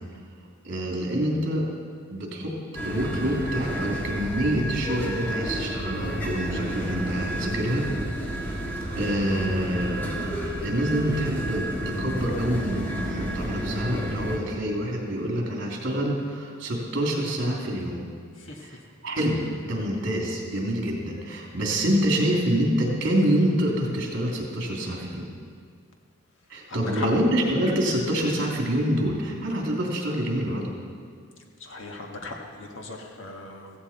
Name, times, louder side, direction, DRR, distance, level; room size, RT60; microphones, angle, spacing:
voice 1, 0.6-1.7 2.1-2.6 2.8-8.6 8.9-10.3 10.6-18.0 18.6-18.8 19.0-25.3 26.5-30.7, equal, 55° right, -1 dB, 3.1 m, -26 dB
sound 1, 2.7-14.4, equal, 10° left, 1.8 m, -30 dB
voice 2, 26.7-27.1 31.6-33.8, left 2 dB, 60° left, 1 dB, 1.7 m, -37 dB
15.5 x 15.5 x 4.4 m, 2.1 s
head